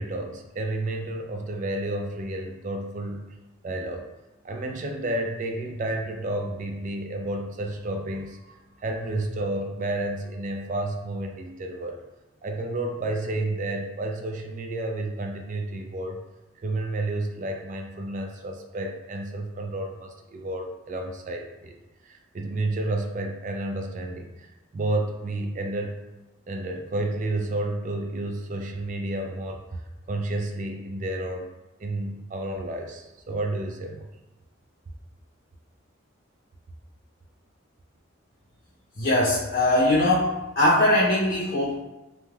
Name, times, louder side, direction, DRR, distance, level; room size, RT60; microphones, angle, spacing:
voice 1, 0.0-3.4 3.6-4.1 4.4-12.0 12.4-16.2 16.6-21.8 22.0-25.9 26.5-29.8 30.1-31.5 31.8-34.1, right 2 dB, 40° right, 3 dB, 0.3 m, -31 dB
voice 2, 39.0-41.7, left 1 dB, 50° left, -8 dB, 0.6 m, -21 dB
3.2 x 2.7 x 2.3 m, 1.1 s
head